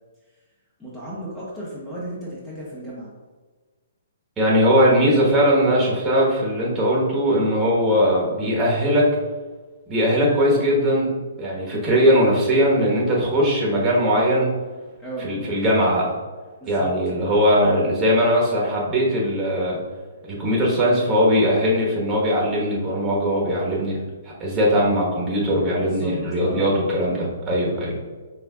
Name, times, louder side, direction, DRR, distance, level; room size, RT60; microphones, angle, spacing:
voice 1, 0.8-3.1 15.0-15.3 16.6-16.9 25.8-26.7, right 1 dB, 10° left, -7 dB, 1.0 m, -34 dB
voice 2, 4.4-9.1 9.9-14.5 15.2-16.1 16.7-19.8 20.3-24.0 24.4-28.0, equal, 15° right, -4 dB, 1.2 m, -20 dB
5.5 x 3.8 x 2.4 m, 1.3 s
figure-of-eight pair, 125°, 0 cm